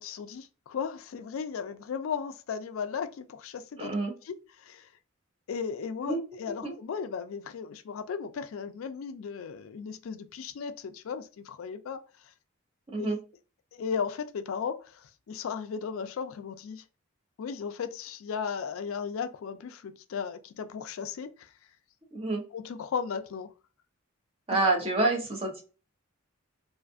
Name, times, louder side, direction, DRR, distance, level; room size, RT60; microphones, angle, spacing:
voice 1, 0.0-3.9 4.2-4.9 5.5-12.0 13.0-13.2 13.7-15.0 15.3-16.8 17.4-21.5 22.5-23.5, left 6 dB, 85° left, 0.4 m, -36 dB
voice 2, 3.8-4.1 6.1-6.2 6.6-6.7 12.9-13.2 22.1-22.4 24.5-25.6, right 2 dB, 30° right, 0.8 m, -27 dB
2.5 x 2.4 x 2.5 m
head